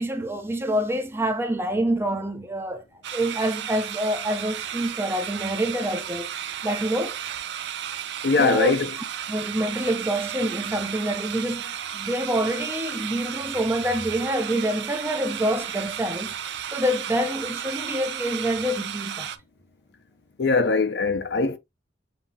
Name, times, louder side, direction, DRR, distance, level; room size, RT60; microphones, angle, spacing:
voice 1, 0.0-2.8 3.1-6.3 6.6-7.2 8.4-8.8 9.3-16.3 16.7-19.3, right 1 dB, 10° right, 0.6 m, -26 dB
sound 1, 3.0-19.4, right 9 dB, 65° right, 0.5 m, -34 dB
voice 2, 8.2-8.9 20.4-21.6, left 3 dB, 60° left, 0.6 m, -21 dB
6.9 x 2.8 x 2.7 m
head